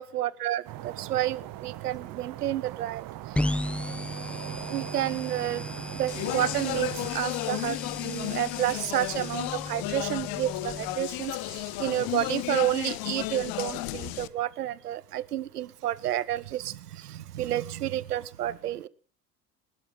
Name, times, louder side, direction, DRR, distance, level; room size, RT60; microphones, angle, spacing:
voice 1, 0.0-3.0 4.7-5.6 6.0-18.9, right 13 dB, 80° right, 22 dB, 0.8 m, -30 dB
sound 1, 0.7-7.1, right 15 dB, 45° right, 1.1 m, -40 dB
sound 2, 3.3-10.9, left 1 dB, 5° left, 0.7 m, -36 dB
Speech, 6.1-14.3, left 20 dB, 50° left, 0.8 m, -33 dB
21.0 x 12.5 x 3.8 m, 0.37 s
figure-of-eight pair, 65°, 46 cm